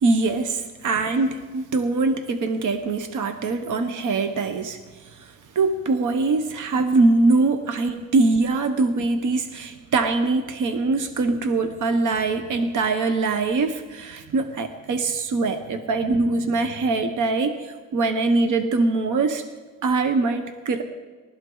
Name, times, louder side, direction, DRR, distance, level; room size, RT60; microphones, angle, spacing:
voice 1, 0.0-4.8 5.2-5.3 5.5-19.4 19.8-20.8, right 3 dB, 65° right, 7 dB, 1.1 m, -23 dB
19.5 x 13.0 x 4.0 m, 1.4 s
cardioid pair, 100°, 33 cm